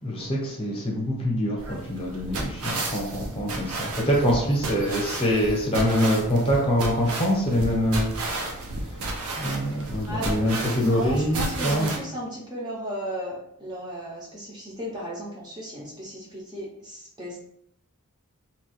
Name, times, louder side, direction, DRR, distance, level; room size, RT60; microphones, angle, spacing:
voice 1, 0.0-9.1 9.4-11.9, equal, 25° left, -3 dB, 0.7 m, -25 dB
sound 1, 1.6-12.0, right 2 dB, 80° right, 0.6 m, -32 dB
voice 2, 10.8-17.4, equal, 20° right, -5 dB, 0.6 m, -34 dB
3.0 x 2.2 x 3.1 m, 0.72 s
head